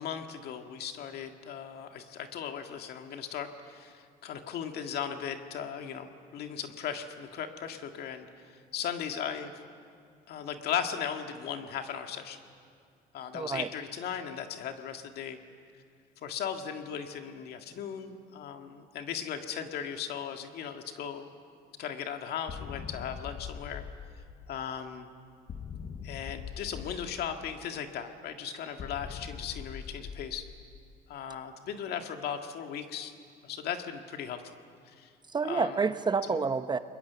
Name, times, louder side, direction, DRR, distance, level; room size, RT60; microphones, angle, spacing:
voice 1, 0.0-9.5 10.3-12.4 13.1-15.4 16.2-21.3 21.8-23.8 24.5-25.1 26.0-30.5 31.1-33.1 33.4-34.6 34.9-35.1 35.4-35.9 36.3-36.4, left 8 dB, 70° left, 5 dB, 1.9 m, -37 dB
voice 2, 13.3-13.7 35.3-36.8, right 5 dB, 25° right, 11 dB, 0.9 m, -28 dB
sound 1, 22.5-24.8 25.5-27.8 28.8-31.1, left 7 dB, 45° left, 1.1 m, -43 dB
29.5 x 21.5 x 7.0 m, 2.3 s
cardioid pair, 110°, 17 cm